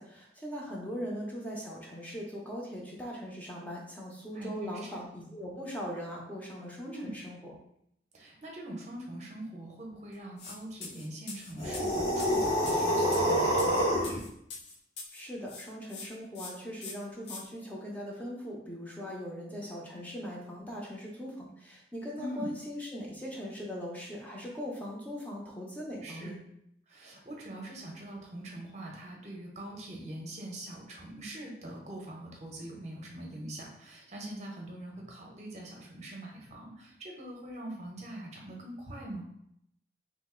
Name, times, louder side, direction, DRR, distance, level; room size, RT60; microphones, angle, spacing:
voice 1, 0.0-7.5 15.1-26.4, equal, 10° left, -3 dB, 0.6 m, -40 dB
voice 2, 4.3-5.0 6.8-7.2 8.1-14.2 22.2-22.5 26.0-26.4 26.9-39.2, right 1 dB, 40° right, -1 dB, 0.7 m, -43 dB
sound 1, 10.4-10.6 10.8-15.2 15.5-16.1 16.3-16.5 16.8-17.4, left 4 dB, 70° left, 0.6 m, -43 dB
sound 2, 11.6-14.2, equal, 35° left, 1.0 m, -27 dB
3.0 x 2.5 x 3.6 m, 0.75 s
head